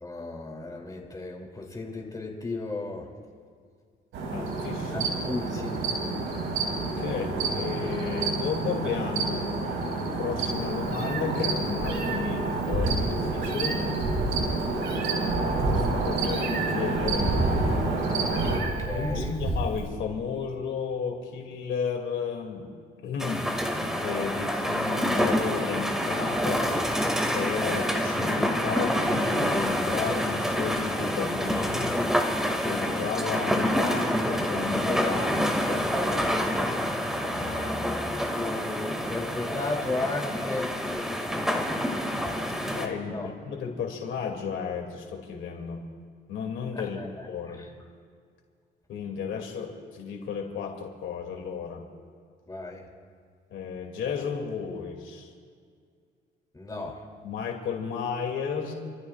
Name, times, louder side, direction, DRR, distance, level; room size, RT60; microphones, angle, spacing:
voice 1, 0.0-3.0 4.9-5.8 18.6-19.3 38.1-40.7 43.1-43.3 47.0-47.3 52.5-52.8 56.5-56.9, left 3 dB, 20° left, -1 dB, 2.9 m, -34 dB
sound 1, 4.1-18.6, right 3 dB, 85° right, 4.4 m, -29 dB
voice 2, 4.3-5.3 7.0-9.4 10.2-13.8 15.7-17.3 18.9-22.7 23.0-23.4 24.0-26.6 27.3-32.0 32.6-36.7 37.2-37.9 42.7-45.8 46.3-47.6 48.9-51.8 53.5-55.3 57.2-58.7, left 6 dB, 75° left, 2 dB, 2.5 m, -33 dB
Meow, 10.5-19.9, right 2 dB, 55° right, 3.2 m, -30 dB
sound 2, 23.2-42.9, equal, ahead, 2.1 m, -27 dB
29.0 x 14.0 x 2.4 m, 2.1 s
cardioid pair, 90°, 20 cm